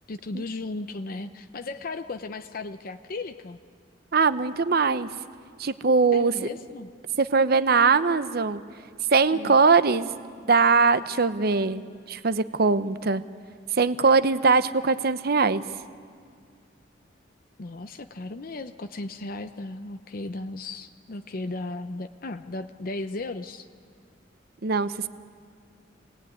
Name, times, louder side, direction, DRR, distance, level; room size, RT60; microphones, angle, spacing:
voice 1, 0.1-3.6 6.1-6.9 9.3-9.6 17.6-23.7, left 2 dB, 50° left, 8 dB, 0.7 m, -36 dB
voice 2, 4.1-5.1 5.6-6.3 7.2-8.6 9.1-10.2 10.5-11.8 12.1-13.2 13.8-15.6 24.6-25.1, right 4 dB, 55° right, 13 dB, 0.8 m, -21 dB
26.5 x 19.0 x 9.3 m, 2.1 s
head